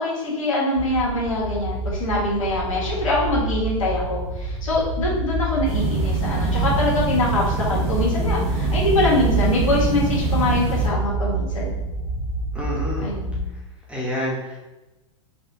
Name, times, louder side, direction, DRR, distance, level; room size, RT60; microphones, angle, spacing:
voice 1, 0.0-11.8 13.0-13.4, left 2 dB, 85° left, -4 dB, 1.4 m, -24 dB
sound 1, 0.7-13.4, right 3 dB, 75° right, 1.1 m, -27 dB
sound 2, 5.6-10.9, right 3 dB, 50° right, 0.9 m, -26 dB
voice 2, 12.5-13.1 13.9-14.6, equal, 5° right, -5 dB, 1.1 m, -28 dB
4.1 x 2.7 x 2.7 m, 1.0 s
hypercardioid pair, 110°, 17 cm